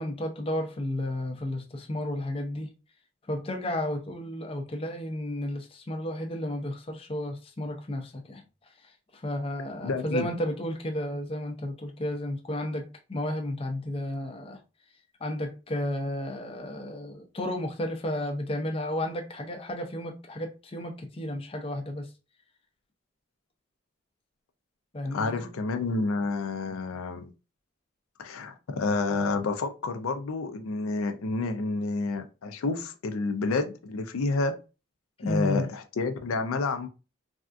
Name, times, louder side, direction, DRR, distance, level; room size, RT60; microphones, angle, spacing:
voice 1, 0.0-2.7 3.3-8.4 8.8-14.6 15.2-22.1 24.9-25.5 35.2-35.7, left 1 dB, 25° left, 0.5 m, -33 dB
voice 2, 9.8-10.2 25.1-27.3 28.2-34.6 35.2-36.9, left 3 dB, 85° left, 0.4 m, -29 dB
3.4 x 2.3 x 2.5 m
head